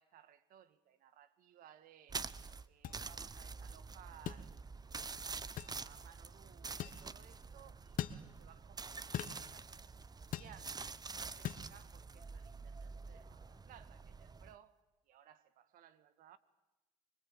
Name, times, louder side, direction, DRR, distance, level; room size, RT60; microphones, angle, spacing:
voice 1, 0.0-2.2 2.7-4.5 4.9-9.7 10.2-14.8 15.1-16.4, right 10 dB, 65° right, 1.8 m, -61 dB
sound 1, 2.1-14.5, right 4 dB, 25° right, 1.1 m, -47 dB
sound 2, 2.8-3.0 4.3-4.4 5.6-5.8 6.8-7.0 8.0-8.2 9.1-9.4 10.3-10.5 11.4-11.6, left 10 dB, 60° left, 1.5 m, -40 dB
24.5 x 22.5 x 9.0 m
hypercardioid pair, 65°, 15 cm